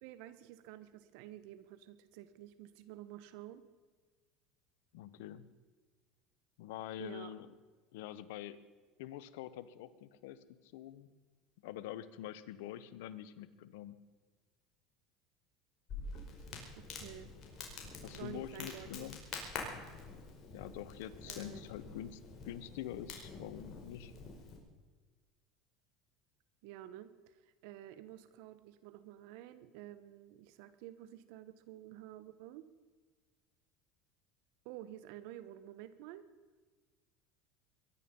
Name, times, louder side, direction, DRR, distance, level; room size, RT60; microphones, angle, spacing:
voice 1, 0.0-3.6 7.0-7.3 16.7-17.3 18.1-19.1 21.2-21.6 26.6-32.7 34.6-36.2, right 13 dB, 70° right, 14 dB, 1.3 m, -50 dB
voice 2, 4.9-5.5 6.6-7.5 7.9-8.6 9.0-10.4 10.7-11.1 11.6-14.0 18.0-19.2 20.5-24.1, left 12 dB, 80° left, 16 dB, 1.0 m, -45 dB
Crackle, 15.9-24.6, left 4 dB, 45° left, 5.1 m, -47 dB
22.5 x 11.0 x 5.5 m, 1.4 s
supercardioid pair, 95°, 0 cm